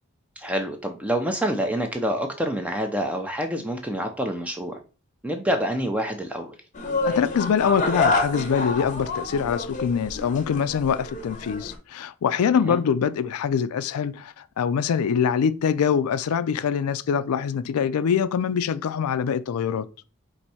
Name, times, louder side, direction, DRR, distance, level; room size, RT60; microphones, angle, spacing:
voice 1, 0.4-4.8 5.2-6.5 12.5-12.8, equal, 5° right, 0.4 m, -27 dB
sound 1, 6.7-11.7, left 3 dB, 35° left, 0.7 m, -28 dB
voice 2, 7.1-19.9, left 7 dB, 85° left, 0.4 m, -24 dB
4.4 x 2.7 x 4.1 m
head